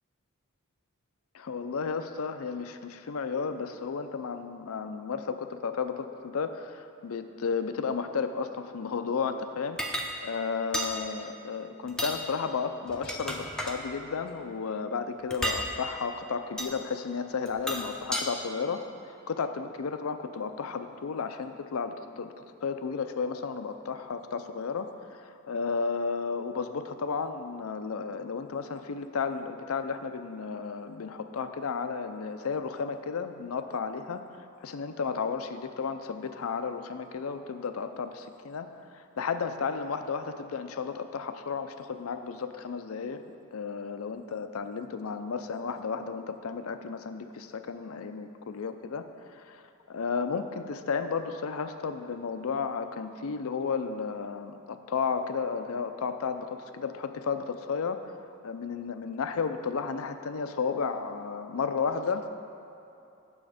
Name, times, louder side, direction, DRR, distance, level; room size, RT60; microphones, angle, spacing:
voice 1, 1.3-9.8 10.2-22.3 22.6-34.2 34.6-38.7 38.9-43.2 43.5-49.1 49.3-58.0 58.4-62.3, left 5 dB, 70° left, 9 dB, 0.5 m, -33 dB
sound 1, 9.8-10.1 10.7-10.9 11.9-12.2 12.9-13.8 15.3-15.6 16.6-16.7 17.5-18.3, equal, 5° left, 0.5 m, -32 dB
8.5 x 6.9 x 5.0 m, 2.8 s
head